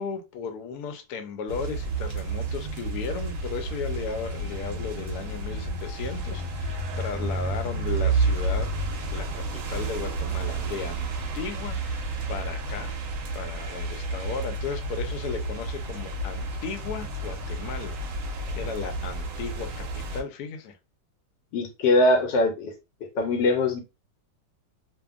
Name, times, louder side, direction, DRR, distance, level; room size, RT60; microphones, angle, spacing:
voice 1, 0.0-8.7 9.1-11.1 11.3-12.9 13.3-20.8, left 5 dB, 70° left, 1.0 m, -35 dB
sound 1, 1.5-20.2, right 2 dB, 65° right, 0.8 m, -31 dB
voice 2, 21.5-22.7 23.1-23.8, left 2 dB, 90° left, 1.3 m, -22 dB
2.7 x 2.5 x 2.4 m
omnidirectional pair, 1.9 m